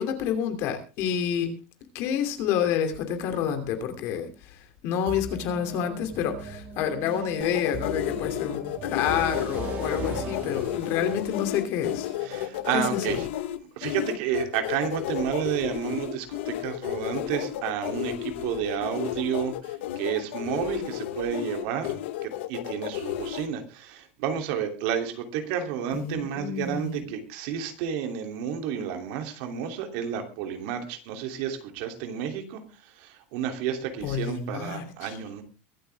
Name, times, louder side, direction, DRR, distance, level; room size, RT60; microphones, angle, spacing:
voice 1, 0.0-1.5 1.9-12.1 12.7-13.2 25.9-27.1 34.0-35.2, left 8 dB, 45° left, 2.8 m, -29 dB
sound 1, 5.1-12.9, right 4 dB, 30° right, 3.6 m, -39 dB
sound 2, 7.4-23.5, left 13 dB, 80° left, 1.3 m, -32 dB
voice 2, 12.2-13.2 13.8-35.4, right 8 dB, 55° right, 3.0 m, -31 dB
23.0 x 8.6 x 3.5 m
supercardioid pair, 175°, 6 cm